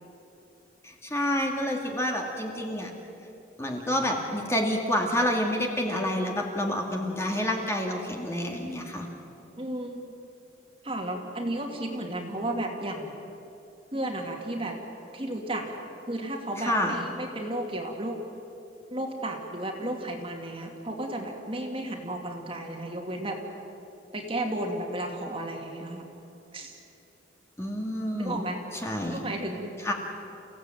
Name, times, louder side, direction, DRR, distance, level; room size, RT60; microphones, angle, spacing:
voice 1, 0.8-2.9 3.6-9.1 16.7-17.0 27.6-28.4 28.8-29.2 29.8-29.9, left 1 dB, 15° left, 1 dB, 2.4 m, -28 dB
voice 2, 6.9-7.4 9.6-10.1 10.8-13.2 13.9-14.8 15.1-15.8 16.1-18.2 18.9-23.4 24.1-26.1 26.5-26.8 28.1-28.6 29.1-29.7, right 1 dB, 30° right, 2 dB, 2.4 m, -33 dB
29.5 x 16.5 x 9.1 m, 2.9 s
head